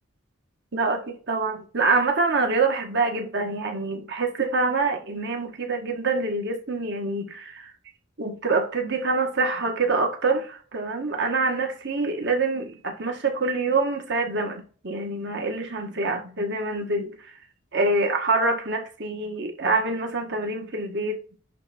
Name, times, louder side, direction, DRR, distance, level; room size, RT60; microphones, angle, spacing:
voice 1, 0.7-7.7 8.2-17.1 17.7-21.4, right 3 dB, 60° right, 1.7 m, -26 dB
10.5 x 3.5 x 4.4 m
head